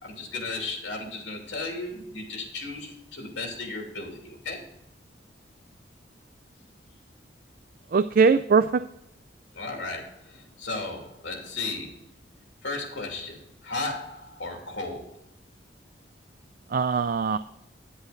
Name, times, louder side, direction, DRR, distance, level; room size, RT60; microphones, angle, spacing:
voice 1, 0.0-4.6 9.5-12.0 12.6-15.2, left 3 dB, 80° left, 1 dB, 2.8 m, -35 dB
voice 2, 7.9-8.8 16.7-17.4, right 5 dB, 50° right, 12 dB, 0.3 m, -21 dB
10.0 x 8.1 x 3.9 m, 0.78 s
head